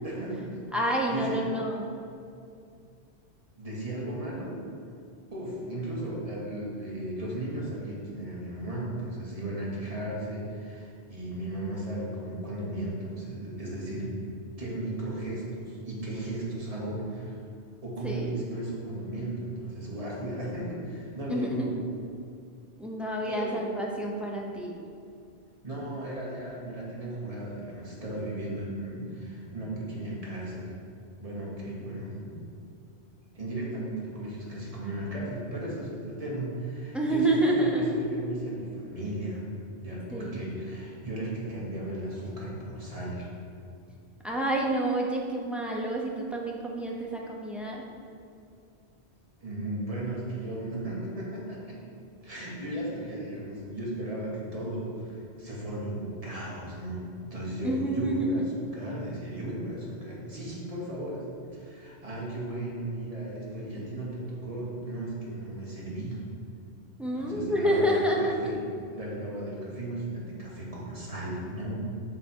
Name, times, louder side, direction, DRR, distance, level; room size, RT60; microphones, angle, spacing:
voice 1, 0.0-0.7 1.1-1.7 3.6-4.6 5.3-14.2 14.6-17.4 17.8-21.8 23.2-23.6 25.6-30.7 31.2-32.4 33.3-39.5 39.8-43.3 49.4-51.8 52.2-58.4 58.7-66.2 67.1-68.6 68.9-71.7, right 1 dB, 35° right, -5 dB, 1.4 m, -35 dB
voice 2, 0.7-1.9 18.0-18.3 21.3-21.7 22.8-24.7 36.9-38.0 40.1-40.5 44.2-47.8 57.6-58.6 67.0-68.4, right 1 dB, ahead, -2 dB, 0.5 m, -28 dB
7.3 x 3.5 x 4.4 m, 2.4 s
omnidirectional pair, 1.1 m